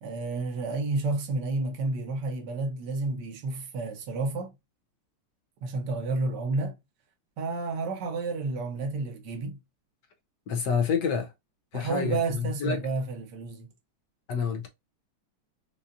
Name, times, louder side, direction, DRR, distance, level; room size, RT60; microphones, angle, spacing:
voice 1, 0.0-4.5 5.6-6.7 7.4-9.5 11.7-13.7, right 3 dB, 60° right, 1.4 m, -30 dB
voice 2, 10.5-11.3 11.7-12.8 14.3-14.7, left 6 dB, 70° left, 1.1 m, -28 dB
5.4 x 2.4 x 2.5 m
omnidirectional pair, 2.3 m